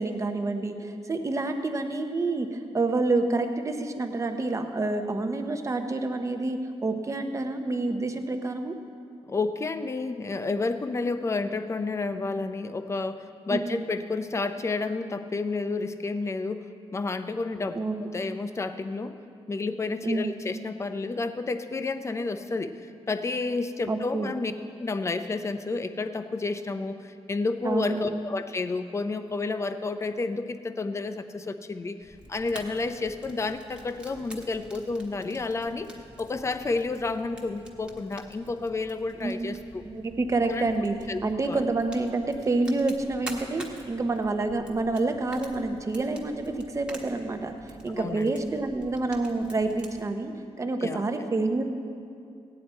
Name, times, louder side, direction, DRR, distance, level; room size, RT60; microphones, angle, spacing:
voice 1, 0.0-8.7 13.5-13.8 17.7-18.0 20.0-20.4 23.9-24.3 27.6-28.0 39.2-39.5 39.8-41.0 41.2-47.5 47.8-50.3 50.6-51.6, right 2 dB, 25° right, 6 dB, 0.8 m, -28 dB
voice 2, 9.3-19.2 19.5-24.5 24.8-39.8 40.4-40.7 41.1-41.7 47.9-48.4 50.8-51.0, left 3 dB, 25° left, 10 dB, 0.5 m, -31 dB
Fire, 32.0-50.0, right 1 dB, 10° right, 1.3 m, -47 dB
17.0 x 9.4 x 4.4 m, 2.4 s
wide cardioid pair, 160°, 11 cm